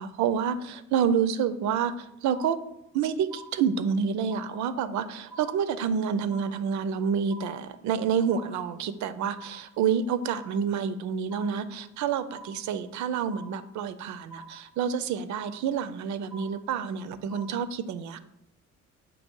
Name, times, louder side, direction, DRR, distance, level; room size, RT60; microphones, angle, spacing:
voice 1, 0.0-2.6 2.9-18.2, right 7 dB, 75° right, 12 dB, 0.6 m, -28 dB
sound 1, 2.3-3.0 3.3-4.0 4.3-5.0 5.3-6.0 6.3-7.0 7.3-8.0 8.3-9.0 9.3-10.0 10.3-11.0 11.3-12.0 12.3-13.0 13.3-14.0 14.3-15.0 15.3-16.0 16.3-17.0 17.3-17.6, right 2 dB, ahead, 0.5 m, -48 dB
7.2 x 2.9 x 5.4 m, 0.81 s
cardioid pair, 115°, 29 cm